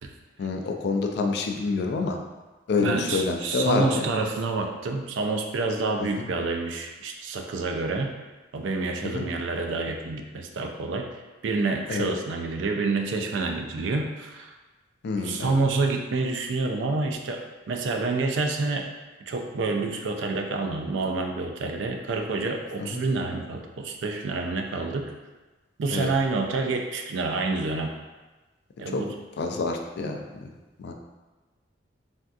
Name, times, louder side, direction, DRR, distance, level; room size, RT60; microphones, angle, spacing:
voice 1, 0.4-2.2 2.7-4.1 6.0-6.1 9.0-9.2 11.9-12.1 15.0-15.5 22.8-23.0 25.9-26.1 28.9-29.0 29.4-30.5 30.8-30.9, left 3 dB, 60° left, 3 dB, 0.3 m, -27 dB
voice 2, 2.8-8.2 8.5-11.1 11.4-14.5 15.2-17.4 17.7-18.9 19.3-25.1 25.8-27.9 28.8-29.1, right 3 dB, 70° right, 3 dB, 0.4 m, -28 dB
3.4 x 2.6 x 2.3 m, 1.2 s
head